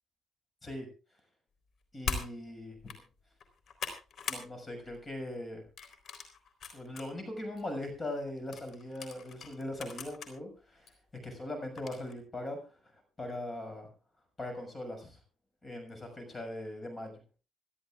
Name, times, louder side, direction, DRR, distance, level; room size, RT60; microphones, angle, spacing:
voice 1, 1.9-2.9 4.3-5.6 6.7-10.9 11.2-12.6 13.2-13.9 14.4-15.2 15.6-17.1, left 1 dB, 25° left, 6 dB, 6.5 m, -40 dB
sound 1, 2.0-2.3 2.8-3.0 3.4-4.5 4.8-5.1 5.8-7.1 7.6-7.7 8.5-10.3 10.9-11.0 11.8-12.1, left 6 dB, 65° left, 3.9 m, -40 dB
27.5 x 12.5 x 2.5 m, 0.34 s
cardioid pair, 90°, 0 cm